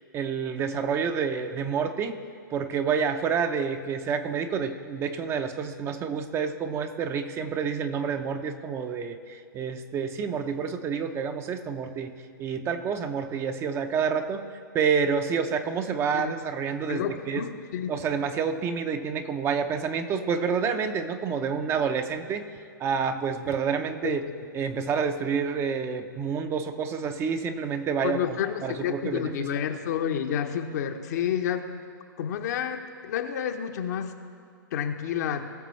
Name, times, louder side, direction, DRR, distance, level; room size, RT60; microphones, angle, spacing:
voice 1, 0.1-2.2 2.5-12.1 12.4-17.5 17.9-22.4 22.8-24.2 24.5-28.2 28.4-29.3, right 6 dB, 25° right, 8 dB, 0.6 m, -28 dB
voice 2, 16.9-17.9 24.0-24.2 28.0-31.7 32.2-32.8 33.0-34.1 34.7-35.5, left 9 dB, 55° left, 6 dB, 0.9 m, -29 dB
19.5 x 6.8 x 3.2 m, 2.3 s
figure-of-eight pair, 110°, 11 cm